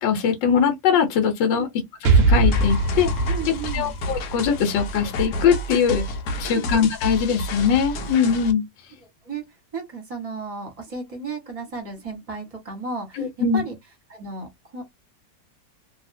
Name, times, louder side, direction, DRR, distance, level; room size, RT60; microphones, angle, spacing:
voice 1, 0.0-1.7 2.0-3.1 3.7-6.0 6.4-8.6 13.2-13.6, left 7 dB, 85° left, 1.4 m, -21 dB
Explosion, 2.0-5.8, right 3 dB, 65° right, 0.6 m, -22 dB
sound 1, 2.5-8.5, equal, 70° left, 1.1 m, -29 dB
voice 2, 3.3-3.9 6.4-6.7 9.0-9.4 9.7-13.8 14.1-14.8, right 4 dB, 25° right, 1.1 m, -34 dB
2.8 x 2.8 x 2.6 m
omnidirectional pair, 1.9 m